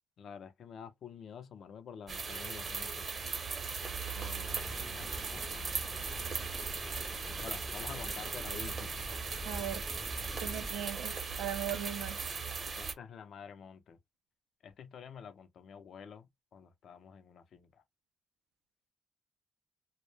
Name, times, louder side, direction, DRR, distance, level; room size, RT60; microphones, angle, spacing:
voice 1, 0.2-3.1 3.8-6.8 7.4-9.0 12.8-14.0 14.6-17.8, left 7 dB, 60° left, 0.5 m, -49 dB
sound 1, 2.1-12.9, right 5 dB, 45° right, 0.7 m, -38 dB
sound 2, 4.4-10.7, left 1 dB, 10° left, 0.4 m, -46 dB
voice 2, 9.5-9.9 10.4-12.3, right 11 dB, 90° right, 0.4 m, -38 dB
2.1 x 2.1 x 3.0 m
cardioid pair, 90°, 0 cm